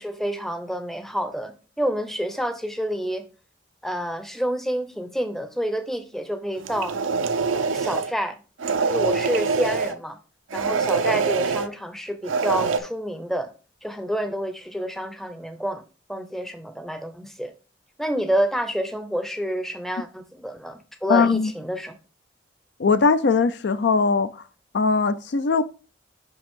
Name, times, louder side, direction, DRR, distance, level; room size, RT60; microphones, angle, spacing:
voice 1, 0.0-3.2 3.8-6.9 7.5-8.4 8.8-10.2 10.5-13.5 13.8-15.8 16.1-17.5 18.0-21.9, equal, ahead, 0.6 m, -28 dB
sound 1, 6.6-8.1 8.6-10.0 10.5-11.7 12.2-12.8, right 4 dB, 80° right, 0.6 m, -24 dB
voice 2, 21.1-21.5 22.8-24.4 24.7-25.6, left 4 dB, 55° left, 0.4 m, -20 dB
5.9 x 5.3 x 3.6 m
head